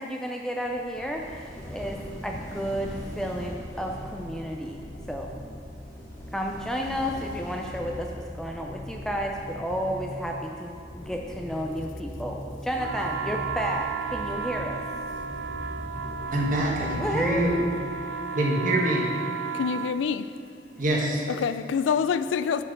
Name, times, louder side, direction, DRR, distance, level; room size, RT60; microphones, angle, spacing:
voice 1, 0.0-4.8 5.1-5.3 6.3-14.8 17.0-17.7 20.7-20.8, equal, 5° left, 1 dB, 0.4 m, -32 dB
sound 1, 0.6-18.1, left 1 dB, 30° left, 0.9 m, -40 dB
sound 2, 1.1-8.4, equal, 20° right, 1.9 m, -44 dB
sound 3, 12.8-20.0, right 6 dB, 85° right, 0.3 m, -33 dB
voice 2, 16.3-17.6 18.3-19.1 20.8-21.2, right 1 dB, 45° right, -3 dB, 1.4 m, -25 dB
voice 3, 19.5-20.3 21.3-22.6, left 6 dB, 85° left, 12 dB, 0.3 m, -26 dB
10.5 x 4.5 x 4.9 m, 2.7 s
head